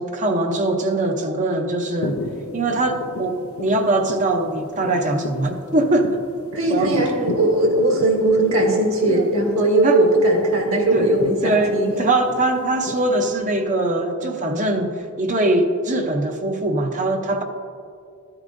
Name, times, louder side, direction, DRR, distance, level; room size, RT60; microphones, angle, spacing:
voice 1, 0.0-2.2 2.5-6.2 6.7-6.9 9.1-9.3 9.8-10.0 10.9-11.1 11.4-17.4, right 2 dB, 35° right, 4 dB, 0.7 m, -22 dB
sound 1, 2.0-13.3, left 3 dB, 70° left, 0.6 m, -34 dB
voice 2, 6.5-11.9, right 1 dB, 70° right, 0 dB, 1.7 m, -19 dB
13.0 x 9.8 x 2.6 m, 2.3 s
head